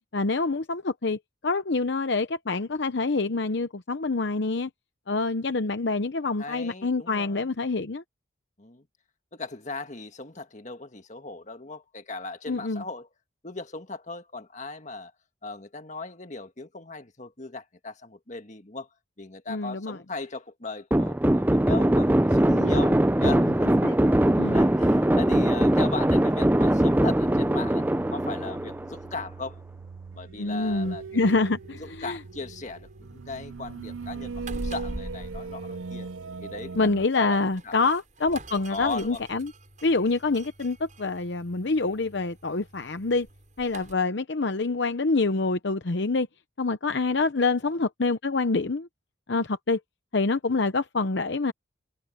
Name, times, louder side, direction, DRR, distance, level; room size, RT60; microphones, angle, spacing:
voice 1, 0.1-4.7 5.1-8.0 12.5-12.8 19.5-20.0 22.5-22.9 23.2-23.5 23.8-24.0 24.3-24.6 30.4-32.2 36.8-39.5 39.8-43.3 43.6-46.3 46.6-48.9 49.3-49.8 50.1-51.5, left 3 dB, 60° left, 0.8 m, -26 dB
voice 2, 6.4-7.5 8.6-8.9 9.3-13.1 13.4-15.1 15.4-18.9 19.2-23.7 24.5-27.8 28.1-29.6 30.1-31.5 31.8-36.1 36.4-36.9 37.1-37.8 38.7-39.2 47.6-47.8, left 3 dB, 40° left, 1.8 m, -38 dB
sound 1, 20.9-29.2, right 1 dB, 10° right, 0.5 m, -21 dB
sound 2, 26.9-37.1, right 4 dB, 80° right, 0.5 m, -40 dB
sound 3, 30.7-43.9, right 1 dB, 40° right, 7.6 m, -45 dB
head